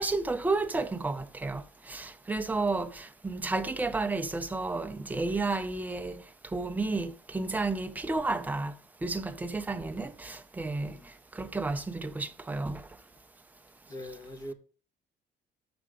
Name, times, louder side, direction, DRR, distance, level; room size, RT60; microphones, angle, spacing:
voice 1, 0.0-6.2 6.5-8.7 9.0-11.0 11.3-12.8, right 3 dB, 10° right, 0.4 m, -32 dB
voice 2, 13.9-14.5, equal, 20° left, 1.0 m, -42 dB
6.8 x 4.8 x 4.9 m
cardioid pair, 175°, 18 cm